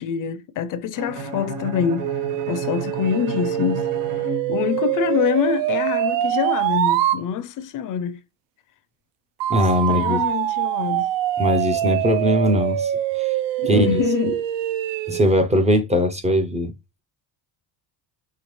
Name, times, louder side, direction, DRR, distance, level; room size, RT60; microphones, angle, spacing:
voice 1, 0.0-2.1 2.5-3.9 4.1-8.2 9.9-11.1 13.6-14.4, left 8 dB, 50° left, 0.5 m, -25 dB
Bowed string instrument, 0.9-5.1, right 3 dB, 45° right, 1.3 m, -33 dB
sound 1, 2.0-7.2 9.4-15.2, right 13 dB, 80° right, 0.6 m, -24 dB
voice 2, 9.5-10.2 11.4-13.4 13.7-14.0 15.1-16.7, equal, 15° right, 0.4 m, -20 dB
5.6 x 3.1 x 3.0 m
cardioid pair, 160°, 44 cm